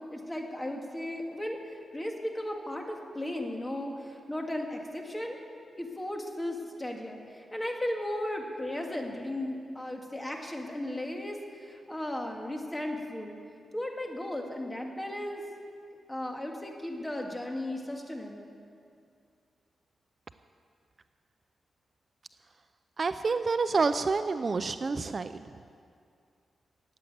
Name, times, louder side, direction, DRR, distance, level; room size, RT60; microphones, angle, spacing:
voice 1, 0.1-5.4 5.8-13.4 13.7-15.4 16.1-18.5, left 1 dB, 15° left, 2 dB, 1.9 m, -36 dB
voice 2, 23.0-25.3, right 4 dB, 40° right, 10 dB, 0.4 m, -28 dB
14.5 x 9.1 x 9.2 m, 2.3 s
wide cardioid pair, 105°, 0 cm